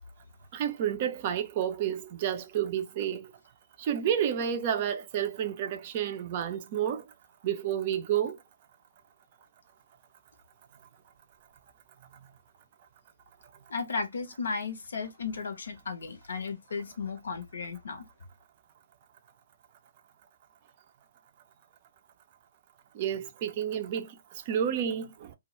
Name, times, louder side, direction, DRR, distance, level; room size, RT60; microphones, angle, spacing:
voice 1, 0.5-3.2 3.8-7.0 7.4-8.4 23.0-24.1 24.5-25.1, right 9 dB, 35° right, 0.4 m, -30 dB
voice 2, 13.7-18.1, left 5 dB, 65° left, 0.7 m, -35 dB
2.1 x 2.0 x 2.9 m
figure-of-eight pair, 130°, 0 cm